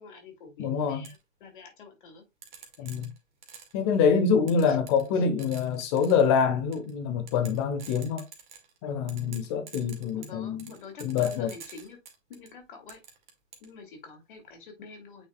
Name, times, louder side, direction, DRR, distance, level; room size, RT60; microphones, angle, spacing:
voice 1, 0.0-2.2 2.8-3.0 4.7-4.8 5.1-5.2 10.1-12.0 12.3-13.0 13.6-15.3, left 5 dB, 40° left, 2.4 m, -47 dB
voice 2, 0.6-1.1 2.8-3.1 3.7-8.2 8.8-10.7 11.0-11.5, left 6 dB, 20° left, 1.1 m, -25 dB
sound 1, 1.0-1.2 2.4-3.8 4.5-5.1 5.4-6.3 6.7-6.9 7.3-8.8 9.1-12.5 12.9-13.7, right 6 dB, 40° right, 1.9 m, -47 dB
9.0 x 4.5 x 2.3 m
figure-of-eight pair, 125°, 38 cm